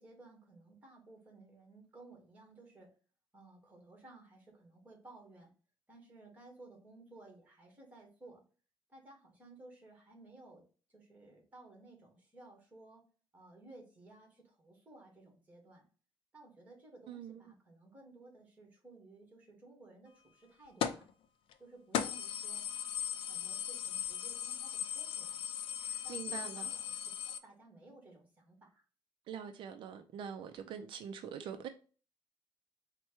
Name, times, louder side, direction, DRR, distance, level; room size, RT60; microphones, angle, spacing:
voice 1, 0.0-2.9 3.3-5.5 5.9-8.4 8.9-10.6 10.9-13.1 13.3-15.8 16.3-21.1 21.6-25.4 26.0-28.8, right 2 dB, 15° right, 1.5 m, -57 dB
voice 2, 17.1-17.4 25.9-26.7 29.3-31.7, right 8 dB, 70° right, 0.4 m, -44 dB
sound 1, 20.8-21.1 21.5-21.6 21.9-27.4, left 9 dB, 85° left, 0.4 m, -38 dB
4.4 x 2.2 x 4.4 m
cardioid pair, 175°, 9 cm